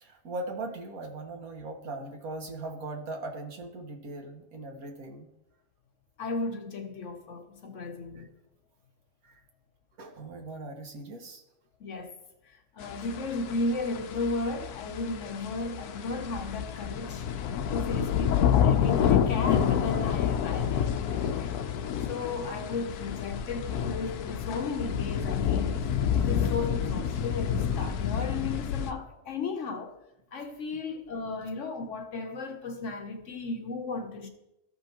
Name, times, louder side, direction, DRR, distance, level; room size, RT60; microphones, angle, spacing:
voice 1, 0.0-5.3 8.2-8.3 9.2-9.3 10.0-11.4 30.7-30.8, right 2 dB, 70° right, 1.6 m, -39 dB
voice 2, 6.2-8.3 11.8-12.2 12.5-17.3 17.7-21.6 22.1-25.9 26.1-30.0 30.3-34.3, left 3 dB, 65° left, 0.9 m, -35 dB
sound 1, 12.8-28.9, left 8 dB, 90° left, 1.1 m, -29 dB
14.0 x 5.4 x 2.9 m
omnidirectional pair, 1.6 m